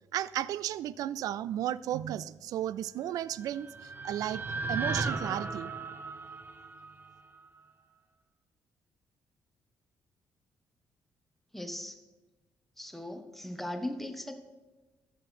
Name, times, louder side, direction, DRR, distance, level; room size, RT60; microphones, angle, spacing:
voice 1, 0.1-3.7 4.0-4.4 4.7-5.7, right 11 dB, 85° right, 19 dB, 0.3 m, -34 dB
sound 1, 3.2-7.4, right 3 dB, 35° right, 0.8 m, -36 dB
voice 2, 11.5-12.0 12.8-14.4, left 1 dB, 5° left, 6 dB, 1.0 m, -38 dB
13.5 x 5.1 x 5.7 m, 1.2 s
cardioid pair, 115°, 6 cm